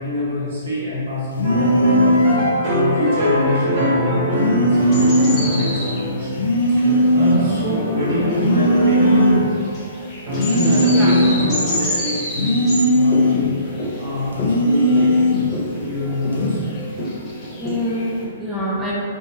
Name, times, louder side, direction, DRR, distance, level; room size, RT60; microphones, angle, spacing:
voice 1, 0.0-6.4 6.7-9.4 10.5-15.2 15.7-16.6, equal, 65° right, -9 dB, 1.2 m, -25 dB
sound 1, 1.3-2.5 4.4-5.5 6.4-7.5 8.3-9.5 10.3-11.5 12.3-13.5 14.3-15.5 16.3-16.7, equal, 75° left, 0.4 m, -17 dB
sound 2, 1.4-6.5 6.8-9.5 10.3-11.8, left 1 dB, 45° right, 0.7 m, -23 dB
sound 3, 4.7-18.3, left 1 dB, 25° left, 0.7 m, -30 dB
voice 2, 10.9-11.2 17.5-18.9, equal, 5° right, -8 dB, 0.4 m, -25 dB
2.6 x 2.2 x 2.7 m, 2.2 s
hypercardioid pair, 125°, 0 cm